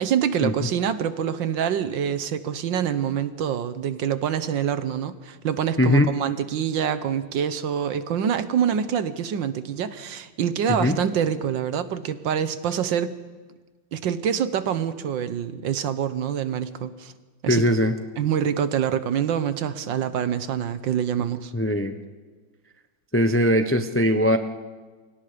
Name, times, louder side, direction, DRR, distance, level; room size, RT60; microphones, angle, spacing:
voice 1, 0.0-13.1 13.9-17.1 17.4-17.6 18.2-21.5, right 8 dB, 65° right, 12 dB, 1.6 m, -26 dB
voice 2, 5.8-6.1 10.8-11.0 17.5-18.0 21.5-22.0 23.1-24.4, left 1 dB, 15° left, 7 dB, 0.4 m, -20 dB
28.5 x 24.5 x 5.1 m, 1.4 s
omnidirectional pair, 2.2 m